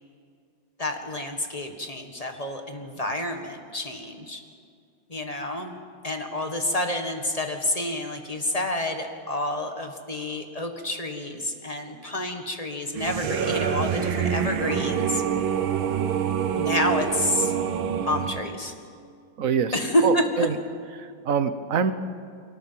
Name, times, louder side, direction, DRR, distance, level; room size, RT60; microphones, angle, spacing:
voice 1, 0.8-4.4 5.1-5.8 6.0-15.2 16.5-17.5 18.0-18.7 19.7-20.5, left 1 dB, 20° left, 5 dB, 1.5 m, -28 dB
sound 1, 12.9-18.4, right 8 dB, 80° right, 1.9 m, -26 dB
voice 2, 19.4-19.7 20.0-20.5 21.0-21.9, right 7 dB, 50° right, 11 dB, 1.1 m, -25 dB
23.5 x 18.0 x 7.5 m, 2.3 s
omnidirectional pair, 2.2 m